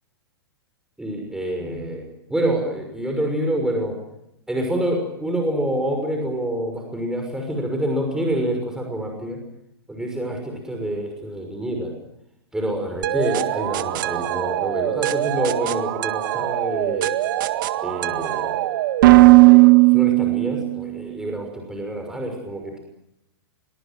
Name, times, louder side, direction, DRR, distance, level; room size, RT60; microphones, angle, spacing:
voice 1, 1.0-3.9 4.5-9.4 9.9-11.9 12.5-17.1 17.8-18.6 19.5-22.8, right 1 dB, 5° right, 2 dB, 6.1 m, -27 dB
sound 1, 13.0-20.8, right 20 dB, 55° right, 1.8 m, -18 dB
25.5 x 23.0 x 7.7 m, 0.83 s
hypercardioid pair, 115°, 13 cm